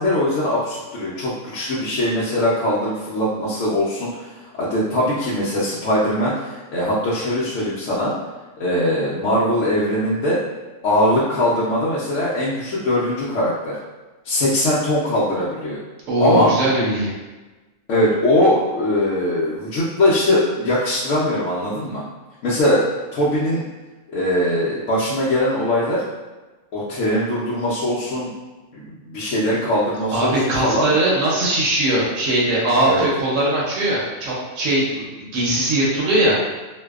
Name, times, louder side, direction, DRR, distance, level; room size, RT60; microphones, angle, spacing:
voice 1, 0.0-4.3 4.6-8.1 8.6-10.4 10.8-13.7 14.2-15.8 16.2-16.5 17.9-22.0 22.4-22.8 23.1-23.6 24.1-26.0 26.7-28.3 28.7-30.3 30.6-30.9 32.8-33.1, left 1 dB, 75° left, -9 dB, 0.9 m, -21 dB
voice 2, 16.1-17.1 30.1-36.4, right 1 dB, 75° right, -5 dB, 1.0 m, -20 dB
2.6 x 2.2 x 2.3 m, 1.2 s
omnidirectional pair, 1.4 m